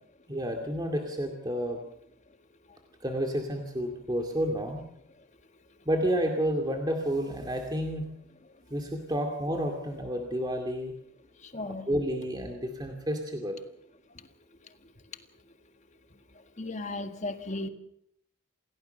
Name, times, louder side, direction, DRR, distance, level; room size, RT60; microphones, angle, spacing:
voice 1, 0.3-1.8 3.0-4.8 5.9-8.1 8.7-10.9 11.6-13.6, equal, 20° right, 3 dB, 2.3 m, -30 dB
voice 2, 11.4-11.9 16.6-17.7, left 2 dB, 35° left, 8 dB, 1.8 m, -35 dB
28.0 x 16.5 x 6.7 m, 0.72 s
head